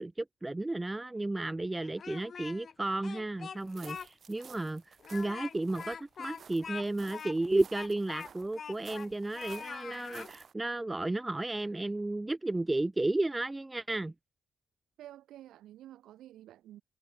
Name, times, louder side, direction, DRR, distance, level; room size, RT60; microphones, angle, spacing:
voice 1, 0.0-14.1, right 2 dB, 15° right, 0.4 m, -33 dB
Speech, 1.8-2.7 3.0-4.1 4.4-4.5 5.0-9.1 9.3-10.3, left 6 dB, 45° left, 2.3 m, -43 dB
sound 1, 3.6-10.5, right 7 dB, 50° right, 4.3 m, -55 dB
voice 2, 15.0-16.8, right 13 dB, 90° right, 3.3 m, -50 dB
cardioid pair, 120°, 0 cm